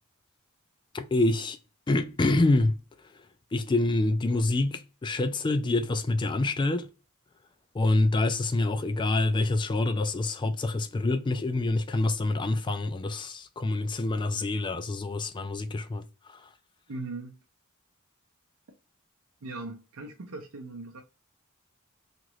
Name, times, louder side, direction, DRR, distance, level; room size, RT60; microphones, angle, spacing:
voice 1, 0.9-1.6 1.9-2.8 3.5-6.9 7.7-16.5, left 2 dB, 20° left, 0.3 m, -26 dB
voice 2, 16.9-17.4 19.4-21.0, right 2 dB, 75° right, 0.6 m, -39 dB
2.9 x 2.5 x 3.0 m
head